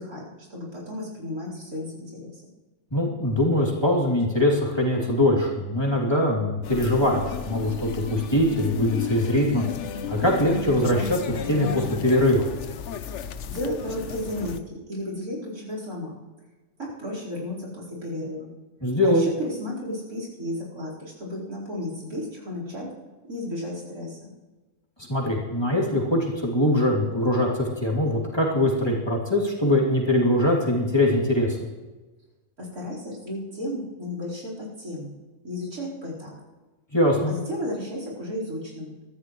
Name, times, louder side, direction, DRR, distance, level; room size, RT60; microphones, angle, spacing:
voice 1, 0.0-2.4 13.5-16.2 16.8-18.5 19.0-22.9 23.3-24.3 32.6-35.1 35.4-36.3 37.3-38.9, left 1 dB, 85° right, -3 dB, 4.9 m, -33 dB
voice 2, 2.9-9.6 10.1-12.5 18.8-19.3 25.1-31.6 36.9-37.3, left 1 dB, 15° left, -4 dB, 2.8 m, -22 dB
sound 1, 6.6-14.6, left 7 dB, 60° left, 0.9 m, -34 dB
23.5 x 14.0 x 3.2 m, 1.2 s
omnidirectional pair, 1.5 m